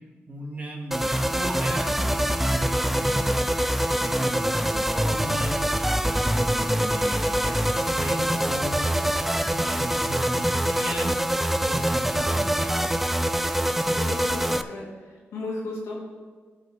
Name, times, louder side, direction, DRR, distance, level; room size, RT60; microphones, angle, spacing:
voice 1, 0.3-3.5 3.8-11.2 11.6-12.8, right 1 dB, 30° right, -1 dB, 2.0 m, -36 dB
sound 1, 0.9-14.6, right 1 dB, 5° right, 0.4 m, -24 dB
voice 2, 13.7-15.9, left 2 dB, 85° left, -4 dB, 2.4 m, -35 dB
14.5 x 4.9 x 3.6 m, 1.5 s
cardioid pair, 65°, 5 cm